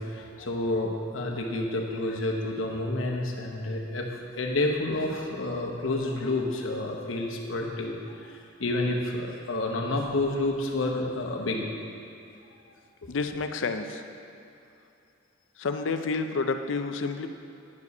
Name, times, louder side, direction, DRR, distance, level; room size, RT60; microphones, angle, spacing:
voice 1, 0.0-11.6 13.0-13.1, left 2 dB, 90° left, 0 dB, 1.0 m, -29 dB
voice 2, 13.1-14.0 15.6-17.3, left 4 dB, 70° left, 7 dB, 0.5 m, -29 dB
9.5 x 4.9 x 5.4 m, 2.6 s
head